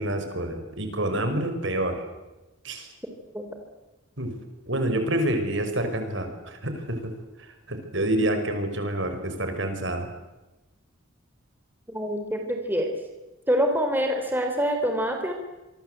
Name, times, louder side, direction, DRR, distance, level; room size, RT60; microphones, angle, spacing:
voice 1, 0.0-1.9 2.6-2.9 4.2-4.3 4.7-7.1 7.4-10.1, right 1 dB, 60° right, 6 dB, 5.6 m, -28 dB
voice 2, 11.9-12.9 13.5-15.3, equal, 10° right, 4 dB, 3.6 m, -25 dB
27.5 x 24.0 x 8.2 m, 1.1 s
head